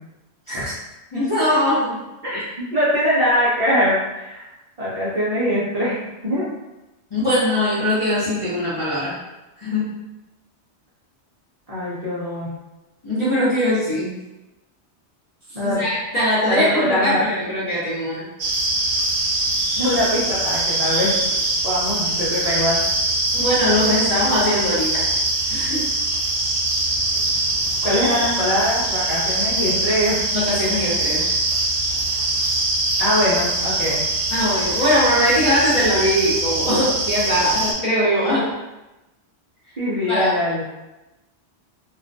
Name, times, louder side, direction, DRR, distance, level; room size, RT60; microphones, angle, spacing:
voice 1, 1.1-2.0 7.1-9.1 9.6-9.9 13.0-14.2 15.6-18.3 23.3-25.1 25.5-25.8 30.3-31.2 34.3-38.5 40.1-40.3, equal, 35° left, -11 dB, 0.5 m, -21 dB
voice 2, 2.2-4.4 4.8-6.5 11.7-12.5 15.5-15.8 16.5-17.2 19.8-21.1 21.6-22.8 27.8-30.2 33.0-34.0 39.8-40.6, equal, 45° right, -9 dB, 0.5 m, -22 dB
sound 1, 18.4-37.7, right 2 dB, 75° right, 0.8 m, -23 dB
2.3 x 2.1 x 2.5 m, 1.0 s
omnidirectional pair, 1.2 m